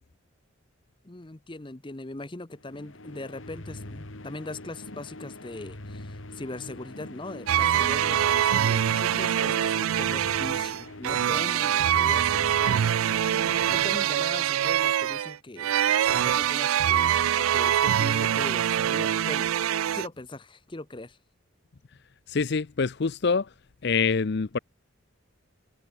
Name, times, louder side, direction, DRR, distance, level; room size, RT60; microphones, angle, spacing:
voice 1, 1.0-19.5 19.9-21.2, left 2 dB, 25° left, 0.8 m, -40 dB
sound 1, 2.6-14.4, left 1 dB, 70° left, 2.4 m, -43 dB
sound 2, 7.5-20.1, right 10 dB, 85° right, 0.4 m, -24 dB
voice 2, 22.3-23.5 23.8-24.6, left 5 dB, 55° left, 0.6 m, -25 dB
head